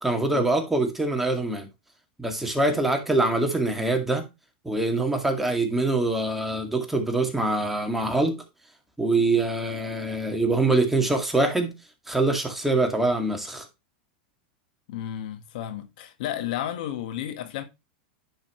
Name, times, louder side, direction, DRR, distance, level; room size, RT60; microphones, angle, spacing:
voice 1, 0.0-1.7 2.2-4.2 4.6-8.3 9.0-11.7 12.1-13.7, right 2 dB, 5° right, 2.2 m, -24 dB
voice 2, 14.9-17.6, left 11 dB, 70° left, 1.5 m, -32 dB
10.5 x 5.8 x 3.1 m
hypercardioid pair, 115°, 5 cm